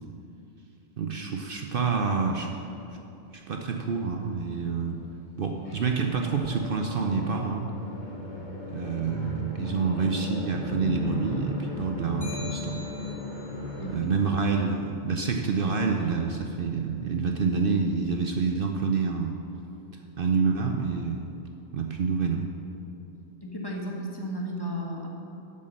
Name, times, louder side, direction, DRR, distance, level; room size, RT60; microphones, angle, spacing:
voice 1, 1.0-2.5 3.3-5.0 5.4-7.7 8.7-12.8 13.9-19.4 20.2-21.2 21.7-22.4, right 5 dB, 55° right, 3 dB, 0.8 m, -27 dB
sound 1, 5.6-14.0, left 2 dB, 40° left, 1.6 m, -36 dB
sound 2, 12.2-13.6, left 2 dB, 75° left, 2.5 m, -42 dB
voice 2, 23.4-25.1, equal, 20° left, -2 dB, 1.2 m, -34 dB
8.1 x 7.6 x 6.5 m, 2.9 s
omnidirectional pair, 1.2 m